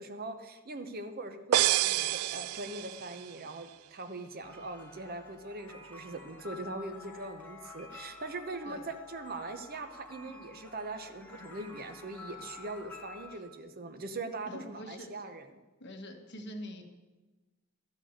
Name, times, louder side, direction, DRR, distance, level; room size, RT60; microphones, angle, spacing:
voice 1, 0.0-15.5, right 2 dB, 45° right, 9 dB, 0.9 m, -41 dB
sound 1, 1.5-3.3, right 14 dB, 85° right, 0.3 m, -28 dB
sound 2, 4.4-13.4, left 3 dB, 5° left, 1.6 m, -50 dB
voice 2, 14.5-15.2 15.8-16.8, equal, 50° left, 4 dB, 1.5 m, -44 dB
13.0 x 6.5 x 8.0 m, 1.2 s
head